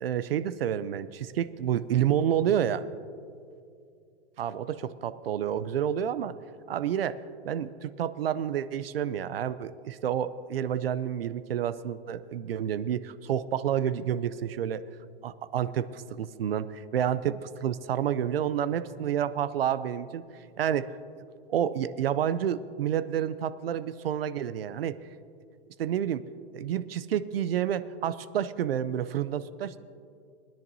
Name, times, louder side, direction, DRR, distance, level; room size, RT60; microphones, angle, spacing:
voice 1, 0.0-2.9 4.4-6.3 6.7-14.8 15.2-20.2 20.6-20.9 21.5-25.0 25.8-26.2 26.5-29.8, right 9 dB, 60° right, 14 dB, 0.6 m, -29 dB
22.5 x 10.5 x 2.7 m, 2.4 s
hypercardioid pair, 170°, 34 cm